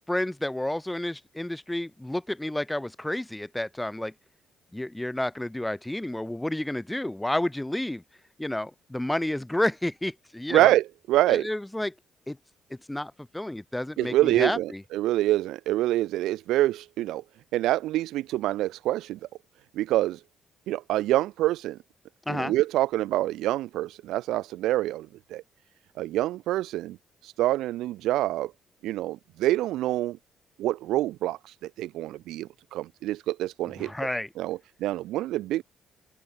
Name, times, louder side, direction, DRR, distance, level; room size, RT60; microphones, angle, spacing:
voice 1, 0.1-4.1 4.7-8.0 8.4-10.7 11.3-11.9 12.3-12.4 12.7-14.8 22.2-22.5 33.8-34.3, left 1 dB, 10° left, 1.7 m, -30 dB
voice 2, 10.5-11.5 14.0-17.2 17.5-19.2 19.7-20.2 20.7-21.8 22.3-25.4 26.0-27.0 27.2-28.5 28.8-30.2 30.6-33.9 34.4-35.6, right 15 dB, 90° right, 1.7 m, -26 dB
open air
cardioid pair, 90°, 0 cm